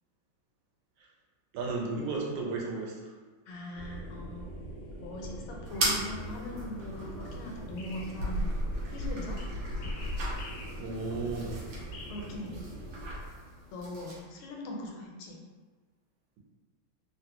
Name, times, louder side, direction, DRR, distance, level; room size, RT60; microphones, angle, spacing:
voice 1, 1.5-3.1 10.8-11.5, right 3 dB, 85° right, -2 dB, 1.5 m, -34 dB
voice 2, 3.5-4.5 5.0-8.4 8.9-9.4 11.1-11.2 12.1-12.6 13.7-15.4, left 1 dB, 80° left, -1 dB, 1.4 m, -41 dB
sound 1, 3.7-13.1, right 1 dB, 60° left, 0.9 m, -43 dB
sound 2, 5.7-14.2, right 1 dB, 70° right, 1.3 m, -36 dB
3.5 x 2.1 x 2.8 m, 1.4 s
omnidirectional pair, 2.3 m